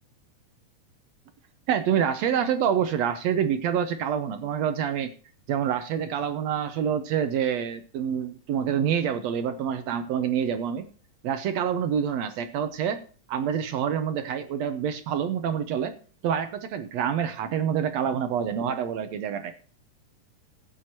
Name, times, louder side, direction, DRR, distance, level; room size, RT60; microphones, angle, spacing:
voice 1, 1.7-5.1 5.5-10.9 11.2-13.0 13.3-15.9 16.2-19.5, right 8 dB, 70° right, 9 dB, 1.8 m, -27 dB
16.0 x 9.5 x 2.9 m, 0.39 s
omnidirectional pair, 3.5 m